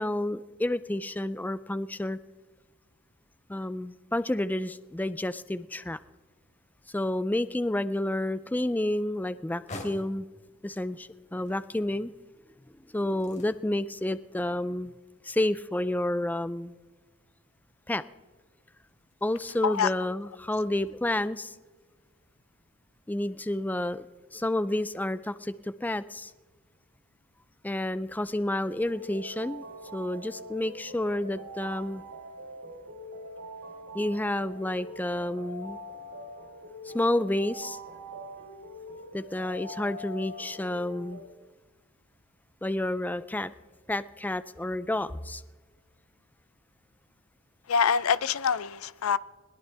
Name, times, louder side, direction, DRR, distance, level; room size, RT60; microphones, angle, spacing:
voice 1, 0.0-2.2 3.5-6.0 6.9-10.3 10.6-12.1 12.9-14.9 15.2-16.7 17.9-18.0 19.2-21.6 23.1-24.1 24.3-26.3 27.6-29.6 29.9-32.0 33.9-35.8 36.8-37.8 39.1-41.2 42.6-43.5 43.9-45.4, left 1 dB, 10° left, 0.4 m, -30 dB
sound 1, 9.2-21.1, left 2 dB, 35° left, 3.1 m, -52 dB
sound 2, 28.6-41.2, equal, 60° right, 4.0 m, -43 dB
voice 2, 47.7-49.2, left 6 dB, 80° left, 0.6 m, -25 dB
21.5 x 17.0 x 3.4 m
head